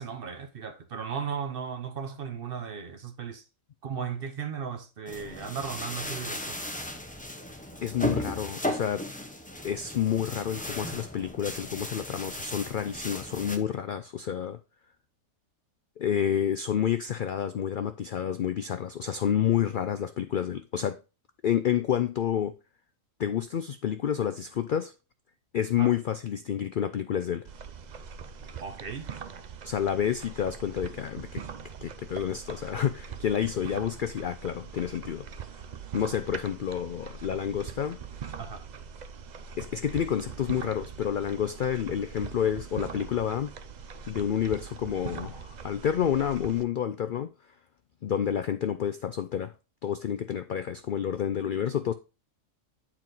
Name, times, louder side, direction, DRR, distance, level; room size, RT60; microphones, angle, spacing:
voice 1, 0.0-3.4 3.8-6.6 25.8-25.9 28.6-29.1 38.4-38.7, right 6 dB, 50° right, 0.8 m, -36 dB
sound 1, 5.1-13.6, left 1 dB, 10° left, 0.5 m, -36 dB
voice 2, 7.8-9.1 9.6-14.6 16.0-21.0 21.4-22.5 23.2-24.9 25.5-27.5 29.6-31.4 31.8-35.3 35.9-38.0 39.6-43.5 44.1-47.3 48.0-49.5 49.8-51.9, left 9 dB, 85° left, 0.4 m, -29 dB
sound 2, 27.4-46.6, right 6 dB, 70° right, 0.4 m, -42 dB
8.9 x 4.5 x 4.0 m
omnidirectional pair, 1.5 m